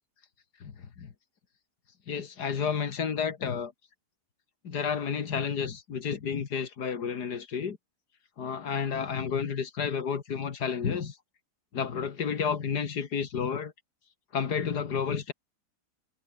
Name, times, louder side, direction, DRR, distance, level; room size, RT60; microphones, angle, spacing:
voice 1, 0.6-1.1 2.1-3.7 4.6-7.8 8.4-11.2 11.7-13.7 14.3-15.3, left 6 dB, 80° left, 2.3 m, -31 dB
omnidirectional pair, 1.7 m